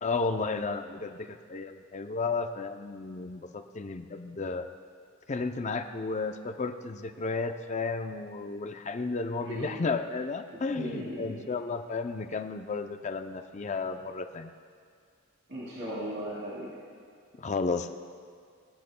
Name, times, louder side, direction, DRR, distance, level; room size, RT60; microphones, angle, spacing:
voice 1, 0.0-4.7 5.3-14.5 17.4-17.9, left 4 dB, 35° left, 8 dB, 0.5 m, -33 dB
voice 2, 9.4-9.8 10.5-11.4 15.5-16.7, equal, 55° right, -8 dB, 2.6 m, -37 dB
20.0 x 11.0 x 2.2 m, 2.1 s
head